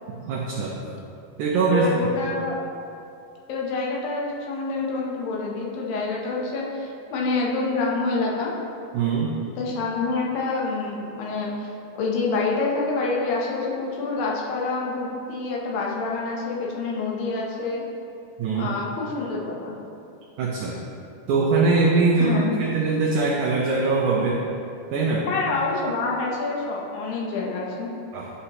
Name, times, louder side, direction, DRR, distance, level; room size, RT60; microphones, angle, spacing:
voice 1, 0.3-0.8 1.4-1.9 8.9-9.4 18.4-18.7 20.4-20.8 21.3-22.4 22.7-24.4 24.9-25.3 28.1-28.3, right 4 dB, 90° right, -2 dB, 1.7 m, -22 dB
voice 2, 1.7-2.6 3.5-8.5 9.6-17.8 18.5-19.7 22.2-22.6 25.3-27.9, left 3 dB, 75° left, -2 dB, 2.6 m, -27 dB
11.5 x 5.5 x 2.9 m, 2.6 s
omnidirectional pair, 4.3 m